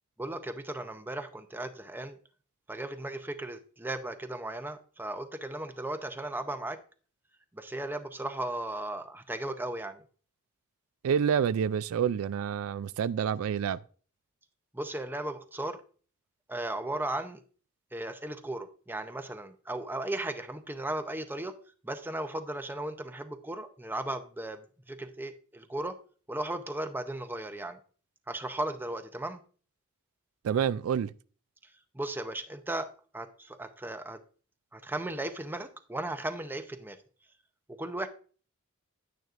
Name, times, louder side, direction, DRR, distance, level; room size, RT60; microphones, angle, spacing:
voice 1, 0.2-2.2 2.7-6.8 7.5-10.0 14.7-15.8 16.5-17.4 17.9-21.5 21.8-24.6 24.9-26.0 26.3-27.8 28.3-29.4 31.9-32.9 33.1-34.2 34.7-37.0 37.8-38.1, right 1 dB, 10° right, 0.6 m, -36 dB
voice 2, 11.0-13.8 30.4-31.1, right 8 dB, 90° right, 0.3 m, -28 dB
10.5 x 9.4 x 2.5 m
head